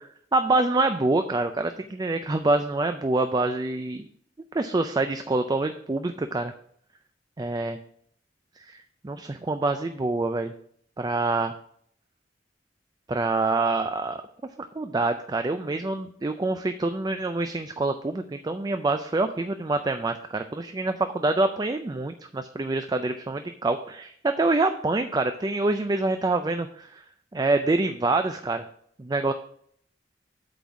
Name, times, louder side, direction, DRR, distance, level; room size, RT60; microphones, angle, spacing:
voice 1, 0.0-4.1 4.5-6.5 7.4-7.8 8.7-8.8 9.0-10.5 11.0-11.5 13.1-14.2 14.7-27.0 27.3-28.7 29.0-29.3, right 2 dB, 20° right, 8 dB, 0.4 m, -26 dB
8.3 x 4.0 x 7.0 m, 0.64 s
head